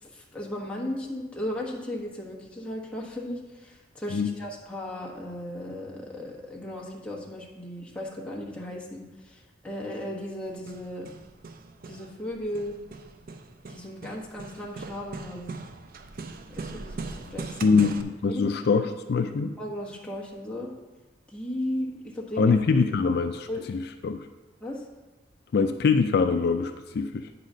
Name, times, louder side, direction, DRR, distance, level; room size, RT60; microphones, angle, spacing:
voice 1, 0.0-11.1 11.8-12.7 13.7-15.5 16.5-17.8 18.3-18.8 19.6-20.7 21.3-22.6 23.5-23.7 24.6-24.9, left 1 dB, 5° left, -4 dB, 1.3 m, -36 dB
Hammer, 10.5-18.0, right 3 dB, 50° right, 0.5 m, -40 dB
voice 2, 17.6-19.5 22.4-24.3 25.5-27.3, left 5 dB, 60° left, 7 dB, 0.4 m, -24 dB
8.7 x 4.0 x 6.2 m, 1.2 s
head